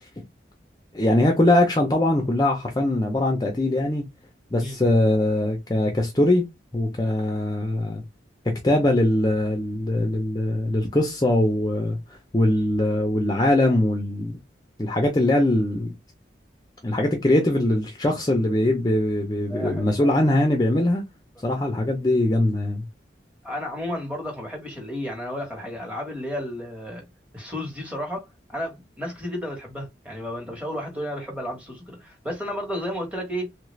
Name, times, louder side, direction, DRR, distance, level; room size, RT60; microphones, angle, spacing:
voice 1, 0.9-4.0 4.5-6.4 6.7-8.0 8.5-14.4 14.8-15.9 16.8-21.0 21.4-22.8, left 1 dB, 20° left, 0.5 m, -22 dB
voice 2, 19.5-20.1 23.4-27.0 27.3-33.5, equal, 5° right, 1.1 m, -32 dB
3.2 x 2.4 x 3.1 m
head